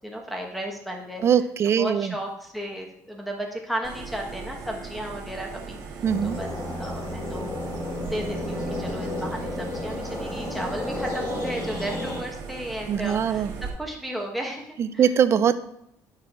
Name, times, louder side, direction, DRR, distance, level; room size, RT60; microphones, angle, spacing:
voice 1, 0.0-1.2 1.6-7.5 8.1-15.1, right 1 dB, ahead, 0 dB, 1.3 m, -34 dB
voice 2, 1.2-2.1 6.0-6.4 12.9-13.5 14.8-15.6, right 8 dB, 40° right, 13 dB, 0.4 m, -21 dB
sound 1, 3.8-13.7, right 5 dB, 70° right, 1.5 m, -39 dB
sound 2, 6.0-12.2, left 1 dB, 80° left, 3.1 m, -32 dB
9.3 x 6.4 x 2.5 m, 0.74 s
cardioid pair, 120°, 7 cm